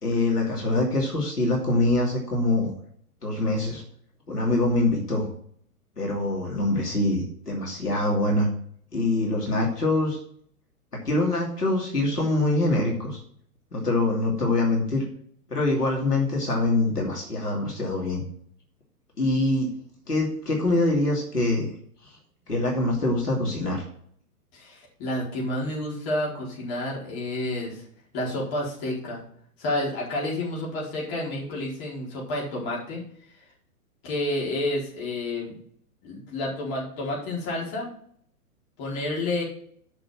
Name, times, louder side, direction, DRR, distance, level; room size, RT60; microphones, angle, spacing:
voice 1, 0.0-2.7 3.2-3.8 4.3-5.3 6.0-8.5 8.9-10.2 11.0-13.2 13.7-15.0 15.5-18.2 19.2-19.7 20.1-21.7 22.5-23.9, left 2 dB, 90° left, -2 dB, 2.8 m, -24 dB
voice 2, 24.5-27.8 28.1-29.2 29.6-33.0 34.0-35.6 36.0-37.9 38.8-39.4, left 1 dB, 35° left, -4 dB, 4.2 m, -30 dB
7.0 x 6.1 x 7.5 m, 0.63 s
figure-of-eight pair, 115°, 45 cm